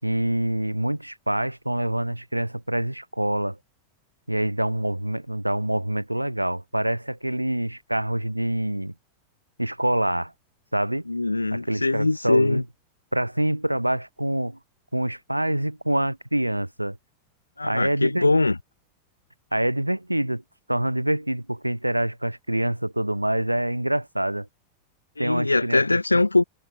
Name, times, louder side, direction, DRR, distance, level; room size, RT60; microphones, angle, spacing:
voice 1, 0.0-3.6 4.3-8.9 9.6-10.3 10.7-11.1 11.5-12.7 13.1-14.6 14.9-17.0 17.6-18.3 19.5-20.4 20.7-24.5 25.2-26.0, right 1 dB, 85° right, 4.0 m, -26 dB
voice 2, 11.1-12.6 17.6-18.5 25.2-26.4, left 2 dB, 80° left, 1.4 m, -22 dB
figure-of-eight pair, 90°, 0 cm